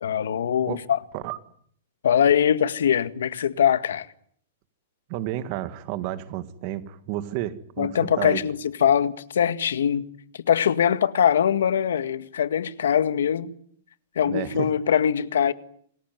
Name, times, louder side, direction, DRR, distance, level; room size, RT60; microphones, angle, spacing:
voice 1, 0.0-1.0 2.0-4.1 7.8-10.1 10.3-13.5 14.2-15.5, left 8 dB, 85° left, 1.8 m, -22 dB
voice 2, 5.1-8.4 14.3-14.7, right 13 dB, 30° right, 1.9 m, -31 dB
28.0 x 20.5 x 9.3 m
supercardioid pair, 175°, 0 cm